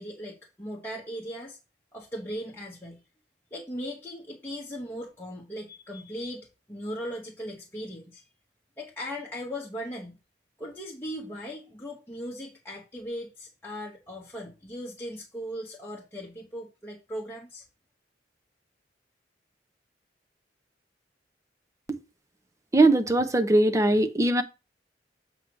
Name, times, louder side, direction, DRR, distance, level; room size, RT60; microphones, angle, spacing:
voice 1, 0.0-1.6 1.9-3.0 3.5-8.2 8.8-10.2 10.6-17.6, equal, 15° left, 1.1 m, -38 dB
voice 2, 22.7-24.4, right 2 dB, 20° right, 0.7 m, -21 dB
7.8 x 3.0 x 6.1 m
head